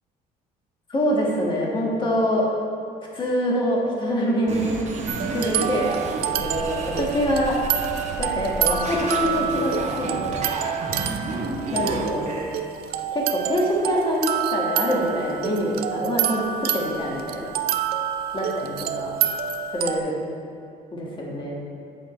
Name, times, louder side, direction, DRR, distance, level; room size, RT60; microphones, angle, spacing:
voice 1, 0.9-2.5 3.1-4.8 5.3-7.6 8.2-10.4 11.7-12.4 13.1-17.5 18.3-19.1 19.7-20.1 20.9-21.5, equal, 30° left, -3 dB, 1.5 m, -25 dB
sound 1, 4.5-12.5, right 2 dB, 45° right, 1.0 m, -31 dB
sound 2, 5.1-20.0, right 10 dB, 65° right, 0.4 m, -28 dB
7.8 x 3.8 x 4.3 m, 2.6 s
cardioid pair, 110°, 17 cm